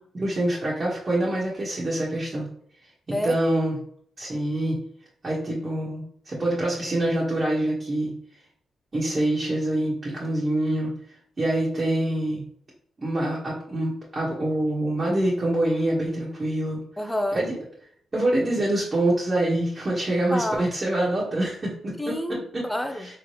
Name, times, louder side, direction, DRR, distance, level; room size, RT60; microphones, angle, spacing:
voice 1, 0.1-2.5 3.2-3.8 4.2-4.8 5.2-8.1 8.9-10.9 11.4-12.4 13.0-16.8 17.3-17.5 18.1-21.9 22.5-22.6, right 1 dB, 35° right, -6 dB, 1.3 m, -25 dB
voice 2, 17.0-17.4 20.3-20.6 22.0-23.1, left 1 dB, 5° left, 7 dB, 0.5 m, -28 dB
3.6 x 3.3 x 3.1 m, 0.64 s
cardioid pair, 90°, 0 cm